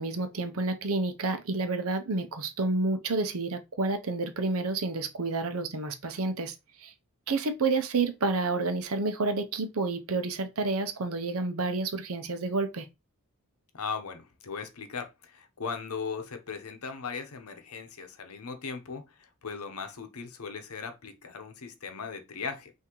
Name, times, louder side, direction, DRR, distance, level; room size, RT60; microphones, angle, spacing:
voice 1, 0.0-6.5 6.8-6.9 7.3-12.9, right 3 dB, 70° right, 0.7 m, -29 dB
voice 2, 13.7-22.7, left 5 dB, 75° left, 0.8 m, -38 dB
5.8 x 2.7 x 3.1 m
head